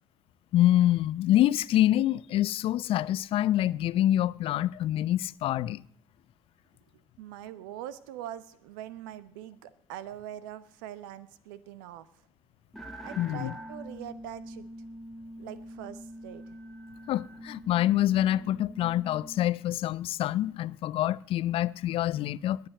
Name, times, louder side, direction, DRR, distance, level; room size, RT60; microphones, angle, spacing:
voice 1, 0.5-5.8 13.2-13.5 17.1-22.7, left 13 dB, 60° left, 0.5 m, -26 dB
voice 2, 7.2-12.1 13.0-14.7 15.4-16.4, right 11 dB, 80° right, 0.9 m, -43 dB
sound 1, 12.7-19.4, equal, ahead, 2.2 m, -44 dB
21.0 x 7.7 x 7.7 m
hypercardioid pair, 55°, 11 cm